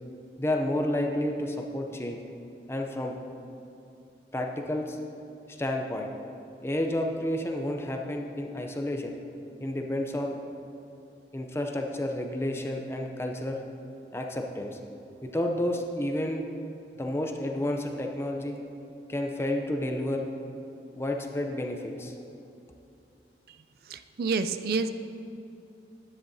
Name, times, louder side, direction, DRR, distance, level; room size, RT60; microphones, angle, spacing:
voice 1, 0.4-2.2 2.7-3.2 4.3-5.0 5.5-6.1 6.6-9.1 9.6-10.4 11.3-13.6 14.1-14.8 15.2-16.5 17.0-18.6 19.1-20.3 20.9-22.1, left 1 dB, 15° left, 2 dB, 0.5 m, -30 dB
voice 2, 23.8-24.9, right 4 dB, 55° right, 10 dB, 0.4 m, -29 dB
10.5 x 10.0 x 2.7 m, 2.7 s
head